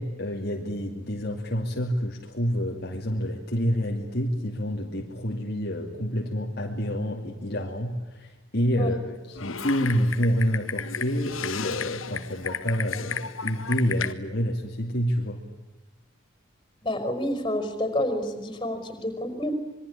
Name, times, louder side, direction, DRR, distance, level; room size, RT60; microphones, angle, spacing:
voice 1, 0.0-15.4, equal, 50° left, 1 dB, 2.5 m, -28 dB
Typing, 9.4-14.1, left 7 dB, 80° left, 1.5 m, -34 dB
voice 2, 16.8-19.5, left 1 dB, 20° left, 9 dB, 5.4 m, -29 dB
26.0 x 23.0 x 9.9 m, 1.1 s
head